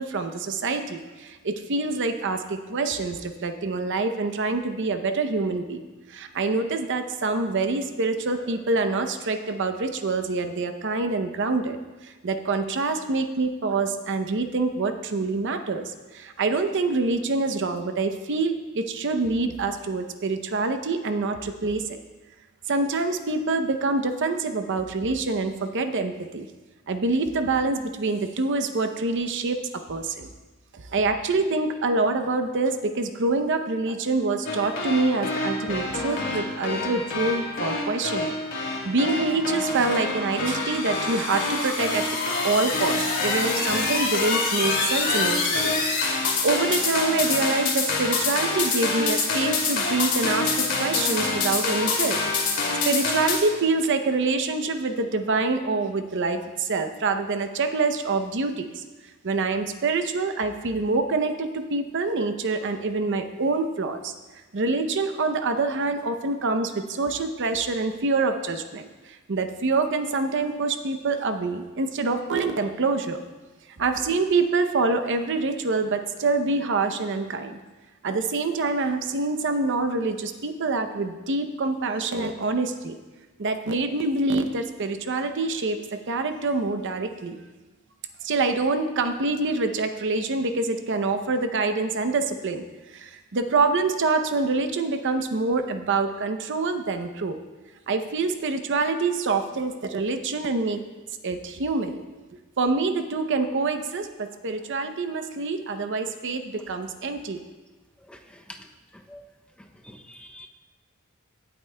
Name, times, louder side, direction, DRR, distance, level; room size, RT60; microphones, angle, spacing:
voice 1, 0.0-5.8 6.1-22.0 22.7-26.5 26.9-29.6 29.9-30.3 30.7-42.2 42.4-45.8 46.4-52.2 52.9-58.8 59.2-64.1 64.5-73.2 73.8-77.6 78.0-83.0 83.4-87.4 88.2-97.4 97.9-100.8 101.2-102.1 102.6-107.4, right 3 dB, 55° right, 8 dB, 0.6 m, -26 dB
sound 1, 34.4-53.4, left 3 dB, 60° left, 2.3 m, -26 dB
voice 2, 109.9-110.5, left 1 dB, 5° left, 3 dB, 0.5 m, -46 dB
17.5 x 8.1 x 2.2 m, 1.2 s
head